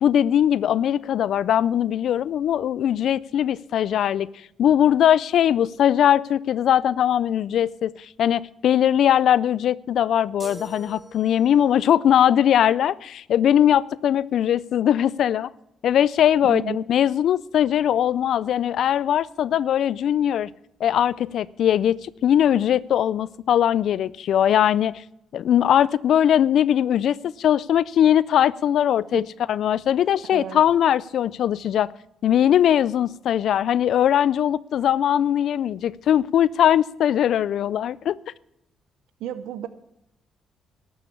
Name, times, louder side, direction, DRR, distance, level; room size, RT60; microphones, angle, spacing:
voice 1, 0.0-4.3 4.6-7.9 8.2-15.5 15.8-20.5 20.8-25.0 25.3-31.9 32.2-38.2, left 10 dB, 70° left, 0.3 m, -20 dB
sound 1, 10.4-11.8, right 2 dB, 30° right, 3.2 m, -43 dB
voice 2, 16.5-16.8 29.1-29.3 30.3-30.6 39.2-39.7, right 10 dB, 85° right, 0.6 m, -32 dB
12.5 x 6.9 x 8.3 m
cardioid pair, 90°, 0 cm